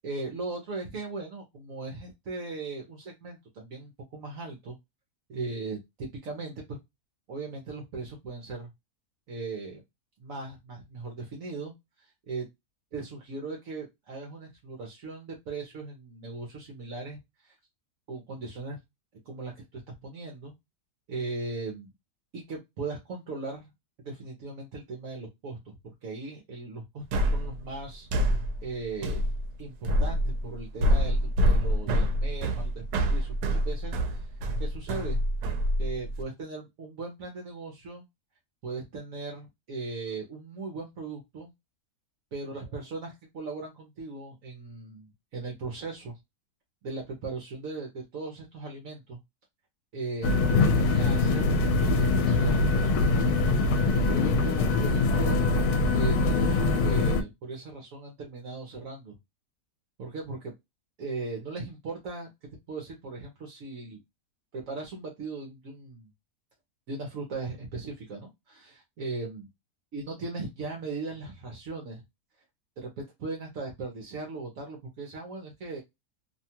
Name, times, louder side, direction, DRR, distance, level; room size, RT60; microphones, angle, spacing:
voice 1, 0.0-4.7 5.3-6.8 7.3-8.7 9.3-9.8 10.2-12.5 12.9-17.6 18.1-18.8 19.2-20.5 21.1-21.9 22.3-23.7 24.0-25.8 26.0-28.4 28.6-29.2 29.6-34.3 34.6-35.2 35.8-38.0 38.6-41.5 42.3-46.2 46.8-49.2 49.9-53.0 54.0-55.4 55.9-59.1 60.0-60.5 61.0-62.3 62.7-64.0 64.5-66.1 66.9-69.5 69.9-72.0 72.8-75.8, right 3 dB, 65° right, 1 dB, 1.1 m, -38 dB
sound 1, 27.1-36.2, equal, 90° right, 1.1 m, -26 dB
sound 2, 50.2-57.2, left 3 dB, 80° left, 1.1 m, -23 dB
2.9 x 2.3 x 2.7 m, 0.20 s
omnidirectional pair, 1.7 m